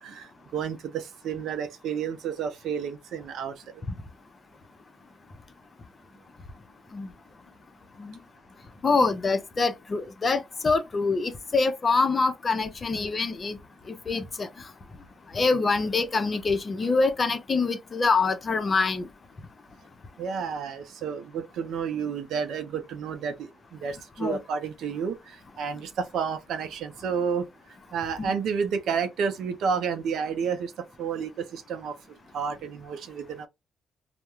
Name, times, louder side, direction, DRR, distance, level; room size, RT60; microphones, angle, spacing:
voice 1, 0.0-3.5 20.2-27.4 27.9-31.9 32.3-33.5, right 6 dB, 75° right, 0.5 m, -31 dB
voice 2, 8.8-13.6 13.9-14.5 15.3-19.1 24.2-24.4 28.2-28.3, left 4 dB, 35° left, 0.5 m, -25 dB
2.3 x 2.0 x 2.9 m
cardioid pair, 90°, 0 cm